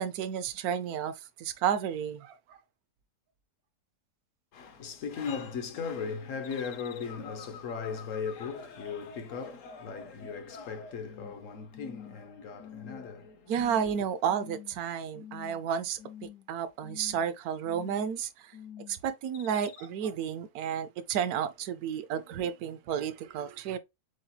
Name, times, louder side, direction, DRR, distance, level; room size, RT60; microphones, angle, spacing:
voice 1, 0.0-2.6 13.5-18.5 18.9-23.8, right 8 dB, 75° right, 1.1 m, -32 dB
voice 2, 4.5-13.8, left 5 dB, 60° left, 1.0 m, -38 dB
sound 1, 6.4-11.4 11.7-12.2 12.6-13.1 13.5-13.9 14.3-14.8 15.1-15.7 16.0-16.5 16.8-17.3 17.6-18.2 18.5-19.0 19.3-19.9, left 7 dB, 85° left, 1.3 m, -48 dB
7.7 x 2.9 x 2.2 m
omnidirectional pair, 1.7 m